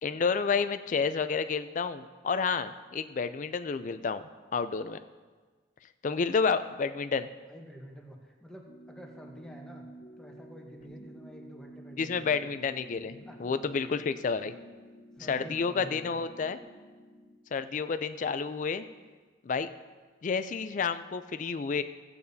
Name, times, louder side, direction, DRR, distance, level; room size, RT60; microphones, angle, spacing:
voice 1, 0.0-4.2 4.5-5.0 6.0-7.3 12.0-14.5 15.3-16.6 17.5-18.9 19.4-19.7 20.2-21.8, left 5 dB, 45° left, 12 dB, 0.4 m, -30 dB
voice 2, 7.5-9.9 10.2-12.6 13.2-13.7 15.2-16.2, equal, 5° left, 0 dB, 1.1 m, -48 dB
sound 1, 8.6-17.4, equal, 70° left, 1.1 m, -50 dB
15.5 x 8.5 x 2.7 m, 1.4 s
head